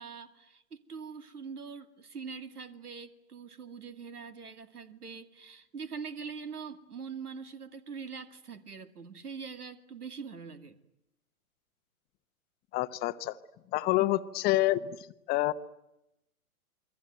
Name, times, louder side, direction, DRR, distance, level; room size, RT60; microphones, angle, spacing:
voice 1, 0.0-10.8, right 5 dB, 85° right, 9 dB, 2.5 m, -43 dB
voice 2, 12.7-13.4 13.7-15.0 15.3-15.5, left 17 dB, 20° left, 12 dB, 1.0 m, -27 dB
28.5 x 22.5 x 9.2 m, 0.87 s
hypercardioid pair, 125°, 44 cm